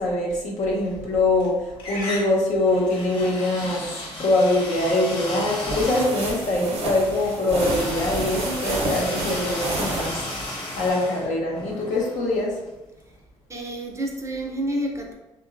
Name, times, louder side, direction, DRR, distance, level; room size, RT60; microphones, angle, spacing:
voice 1, 0.0-3.9 4.2-10.2 10.8-12.6, left 2 dB, 65° left, -3 dB, 0.8 m, -23 dB
sound 1, 0.9-1.5 1.8-12.7, left 2 dB, 40° left, 1.2 m, -35 dB
sound 2, 5.5-10.9, right 1 dB, 50° right, 0.8 m, -30 dB
voice 2, 13.5-15.1, right 1 dB, 20° right, 0 dB, 0.6 m, -29 dB
2.8 x 2.2 x 2.5 m, 1.0 s
hypercardioid pair, 50°, 13 cm